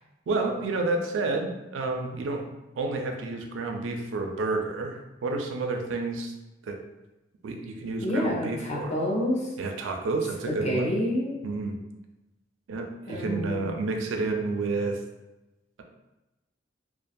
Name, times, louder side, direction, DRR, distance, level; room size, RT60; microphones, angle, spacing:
voice 1, 0.3-2.5 2.8-6.3 6.6-6.8 7.4-8.9 9.6-10.9 11.4-11.8 12.7-15.0, right 3 dB, 75° right, 3 dB, 0.4 m, -30 dB
voice 2, 8.0-9.5 10.5-11.4 13.1-13.7, left 1 dB, 35° left, -3 dB, 0.6 m, -28 dB
2.3 x 2.2 x 2.5 m, 1.0 s
head